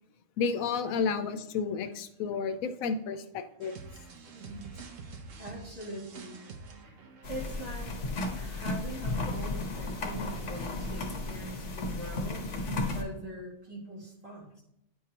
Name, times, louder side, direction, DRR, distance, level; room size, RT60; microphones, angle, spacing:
voice 1, 0.4-3.7, left 5 dB, 85° left, 10 dB, 1.0 m, -31 dB
sound 1, 3.6-11.5, right 4 dB, 70° right, 1.1 m, -49 dB
voice 2, 4.3-4.7 5.4-6.4 6.8-7.0 7.3-8.0 8.3-14.6, right 1 dB, 30° right, -7 dB, 2.7 m, -42 dB
sound 2, 7.2-13.0, left 2 dB, 60° left, 1.3 m, -34 dB
9.6 x 4.7 x 2.9 m, 0.78 s
omnidirectional pair, 1.4 m